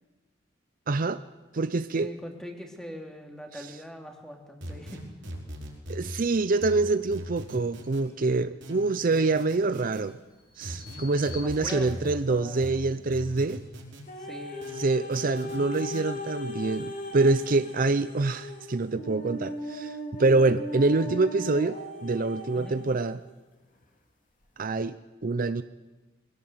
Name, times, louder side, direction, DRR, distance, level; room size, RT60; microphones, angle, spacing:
voice 1, 0.9-1.2 1.5-2.1 3.5-3.7 5.9-10.2 10.6-13.6 14.8-23.2 24.6-25.0 25.2-25.6, right 3 dB, 45° right, 12 dB, 0.6 m, -26 dB
voice 2, 1.9-5.0 11.2-12.7 14.2-14.7 22.5-22.8, equal, 5° left, 3 dB, 2.7 m, -41 dB
sound 1, 4.6-6.2 6.6-8.1 8.6-10.0 10.6-12.2 12.6-14.1 14.6-16.0, equal, 70° right, 4.9 m, -40 dB
Bird vocalization bird call bird song, 9.2-13.4, left 5 dB, 20° left, 2.2 m, -49 dB
sound 2, 14.1-23.2 23.8-23.9, left 1 dB, 45° left, 2.9 m, -38 dB
22.5 x 17.0 x 8.0 m, 1.2 s
head